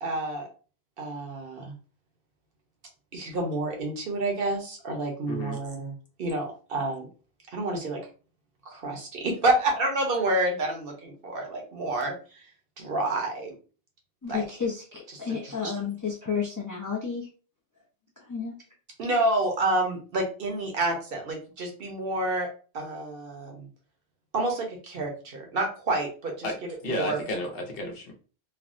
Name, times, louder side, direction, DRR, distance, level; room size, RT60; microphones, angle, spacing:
voice 1, 0.0-0.5 1.0-1.7 3.1-7.1 7.5-8.0 8.6-12.5 12.8-13.6 14.3-14.4 15.3-15.7 19.0-22.5 22.7-23.7 24.3-27.2, right 2 dB, 60° right, 0.9 m, -29 dB
voice 2, 5.3-5.6 26.4-26.6 26.8-28.1, left 1 dB, 65° left, 0.9 m, -32 dB
voice 3, 14.2-17.3 18.2-18.6, left 6 dB, 30° left, 0.4 m, -31 dB
3.4 x 2.0 x 2.5 m
omnidirectional pair, 1.1 m